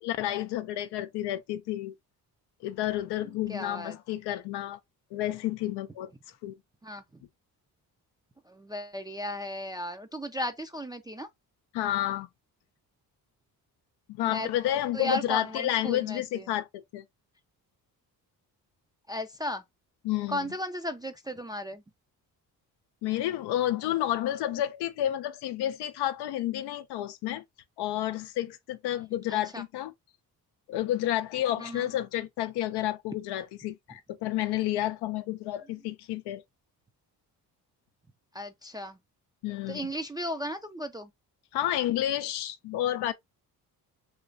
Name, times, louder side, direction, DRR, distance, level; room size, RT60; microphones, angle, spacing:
voice 1, 0.0-1.9 2.6-4.8 5.1-6.1 6.4-6.6 11.7-12.3 14.1-17.0 20.0-20.5 23.0-27.4 27.8-29.9 30.7-36.4 39.4-39.9 41.5-43.1, left 13 dB, 85° left, 0.5 m, -30 dB
voice 2, 3.5-4.0 6.8-7.0 8.5-11.3 14.2-14.5 14.9-16.4 19.1-19.6 20.3-21.8 29.3-29.6 31.6-31.9 38.3-39.0 39.7-41.1, equal, 10° right, 0.3 m, -35 dB
3.2 x 3.1 x 2.5 m
cardioid pair, 80°, 38 cm